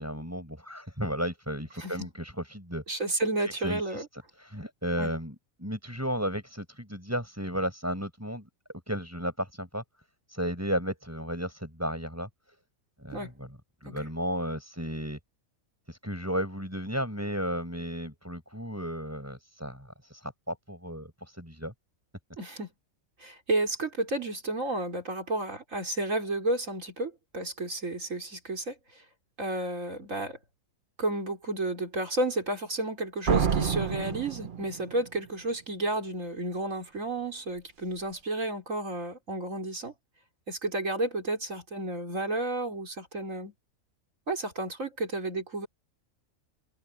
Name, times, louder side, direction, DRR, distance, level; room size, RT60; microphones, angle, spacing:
voice 1, 0.0-2.8 3.4-8.5 8.9-9.8 10.3-12.3 13.0-13.5 13.8-15.2 15.9-21.7, equal, 10° right, 7.2 m, -34 dB
voice 2, 2.9-4.1 5.0-5.1 13.1-13.3 13.8-14.0 22.4-22.7 23.2-28.7 29.4-30.4 31.0-39.9 40.5-43.5 44.3-45.7, right 2 dB, 70° right, 4.6 m, -32 dB
Slam, 33.3-35.2, right 7 dB, 40° right, 0.9 m, -28 dB
omnidirectional pair, 1.4 m